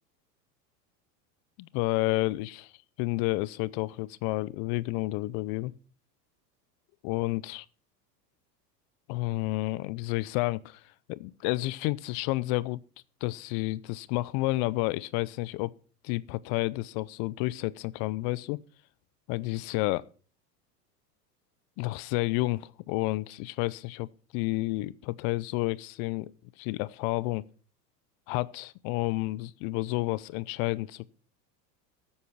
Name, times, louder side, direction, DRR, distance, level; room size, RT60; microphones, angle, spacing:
voice 1, 1.6-2.7 3.0-5.7 7.0-7.7 9.1-10.8 11.1-12.8 13.2-15.7 16.0-18.6 19.3-20.0 21.8-26.3 26.6-27.4 28.3-31.1, left 20 dB, 45° left, 0.6 m, -30 dB
13.0 x 8.8 x 6.0 m
hypercardioid pair, 95°, 49 cm